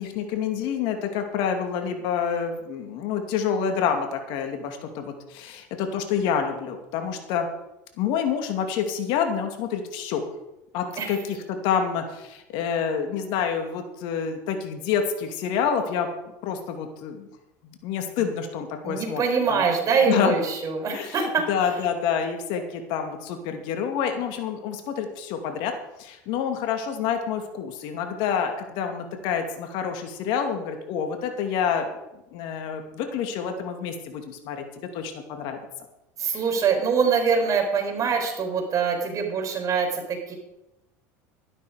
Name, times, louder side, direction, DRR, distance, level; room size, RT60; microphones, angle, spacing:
voice 1, 0.0-7.5 8.0-10.2 10.7-16.1 16.4-17.3 17.8-19.2 19.5-19.6 20.1-20.4 20.9-25.7 26.0-31.9 32.3-35.6 36.2-36.3, left 7 dB, 65° left, 5 dB, 2.5 m, -28 dB
voice 2, 18.8-21.7 36.2-40.3, right 5 dB, 40° right, 3 dB, 4.6 m, -24 dB
13.0 x 11.5 x 5.2 m, 0.91 s
hypercardioid pair, 95°, 9 cm